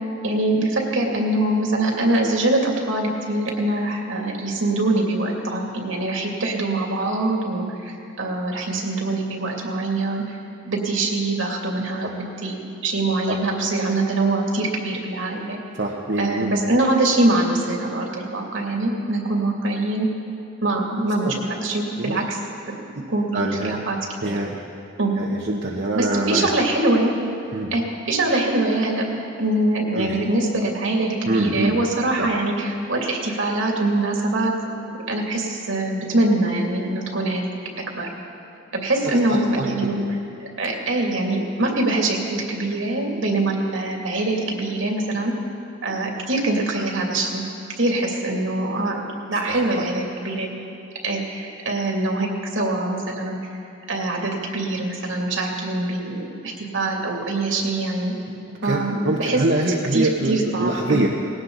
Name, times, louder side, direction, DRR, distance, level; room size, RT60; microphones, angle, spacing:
voice 1, 0.2-10.4 10.6-15.6 16.2-20.1 20.6-22.4 22.6-24.0 24.2-24.3 25.0-25.1 25.9-27.1 27.7-27.8 28.1-34.5 35.1-37.5 37.9-38.1 38.7-40.0 40.4-45.3 45.8-47.4 47.8-50.5 51.0-53.4 53.9-58.1 58.6-59.4 59.9-61.0, right 2 dB, 80° right, 0 dB, 2.7 m, -23 dB
voice 2, 15.8-16.6 21.2-21.3 22.0-22.2 23.3-23.9 24.2-24.6 25.2-26.5 27.5-27.7 29.9-30.2 31.2-31.8 32.2-32.3 39.0-39.7 49.4-49.9 58.5-61.1, right 2 dB, 60° right, -2 dB, 1.1 m, -24 dB
19.5 x 17.5 x 4.0 m, 2.6 s
head